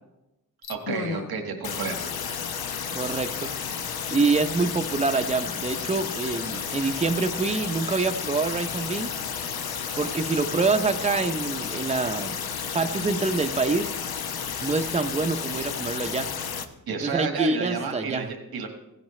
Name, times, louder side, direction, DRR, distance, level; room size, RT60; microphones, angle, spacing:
sound 1, 0.6-1.3 1.6-16.7, left 7 dB, 85° left, 1.1 m, -32 dB
voice 1, 0.7-2.1 16.9-18.7, right 5 dB, 90° right, 4 dB, 1.7 m, -31 dB
voice 2, 2.9-3.5 4.1-9.2 9.9-12.4 12.7-13.9 14.6-16.3 17.0-18.3, right 3 dB, 20° right, 7 dB, 0.7 m, -26 dB
16.0 x 16.0 x 3.2 m, 0.95 s
wide cardioid pair, 120°, 36 cm